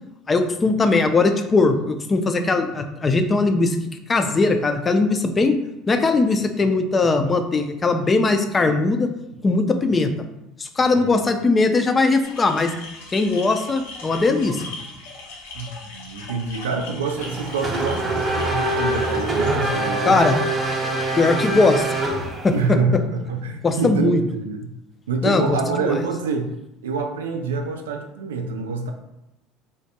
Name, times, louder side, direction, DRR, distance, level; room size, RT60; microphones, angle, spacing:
voice 1, 0.3-3.8 4.1-5.6 5.9-9.1 9.4-10.1 10.6-12.7 13.1-14.6 20.1-20.4 21.2-21.8 22.4-22.5 23.6-24.2 25.2-25.9, left 3 dB, 25° left, 6 dB, 0.3 m, -19 dB
sound 1, 12.2-19.6, left 3 dB, 85° left, 0.7 m, -39 dB
voice 2, 15.5-20.5 22.5-24.7 25.1-26.5 26.8-28.9, right 4 dB, 90° right, 5 dB, 0.3 m, -26 dB
Race car auto racing / Accelerating revving vroom, 17.2-22.7, right 1 dB, 30° right, 0.7 m, -24 dB
3.4 x 2.1 x 2.7 m, 0.89 s
hypercardioid pair, 80°, 0 cm